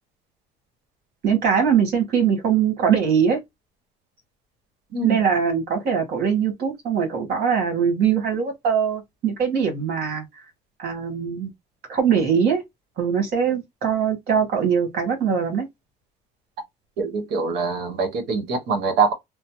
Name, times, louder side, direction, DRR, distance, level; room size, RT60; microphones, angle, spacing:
voice 1, 1.2-3.4 5.0-10.2 10.8-11.5 11.9-12.6 13.0-15.7, right 7 dB, 70° right, 1.7 m, -22 dB
voice 2, 17.0-19.1, right 4 dB, 85° right, 1.1 m, -24 dB
3.2 x 2.0 x 3.0 m
cardioid pair, 110°, 17 cm